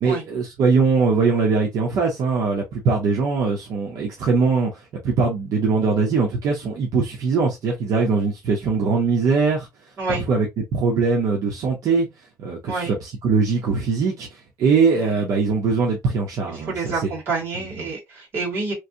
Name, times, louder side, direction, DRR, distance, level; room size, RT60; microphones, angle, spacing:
voice 1, 0.0-4.7 5.0-9.7 10.3-10.5 10.7-12.1 12.4-16.9 17.6-17.8, right 4 dB, 60° right, 0.9 m, -21 dB
voice 2, 14.9-15.2 16.7-18.7, right 3 dB, 35° right, 2.0 m, -28 dB
3.1 x 2.6 x 2.7 m
cardioid pair, 180°, 7 cm